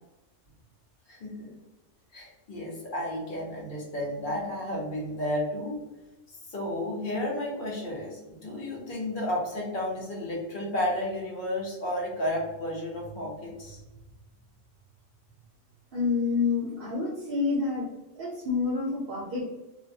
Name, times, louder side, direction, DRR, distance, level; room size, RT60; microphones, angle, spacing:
voice 1, 1.1-1.5 2.1-5.8 6.5-13.8, left 1 dB, 45° left, -3 dB, 0.9 m, -32 dB
voice 2, 15.9-17.9 18.2-19.4, left 4 dB, 60° right, -3 dB, 0.6 m, -28 dB
2.4 x 2.1 x 2.6 m, 1.1 s
omnidirectional pair, 1.3 m